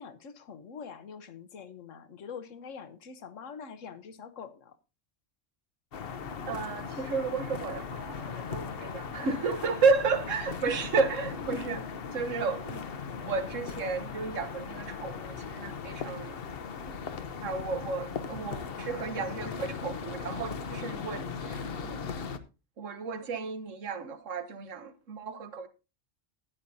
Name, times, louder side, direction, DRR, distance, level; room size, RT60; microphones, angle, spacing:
voice 1, 0.0-4.8, left 6 dB, 75° left, 1.3 m, -44 dB
sound 1, 5.9-22.4, left 6 dB, 55° left, 1.0 m, -38 dB
voice 2, 6.5-11.8 12.1-12.8 13.2-16.4 16.8-16.9 17.4-22.0 22.8-25.7, right 4 dB, 75° right, 1.5 m, -32 dB
14.5 x 10.0 x 2.7 m
omnidirectional pair, 1.3 m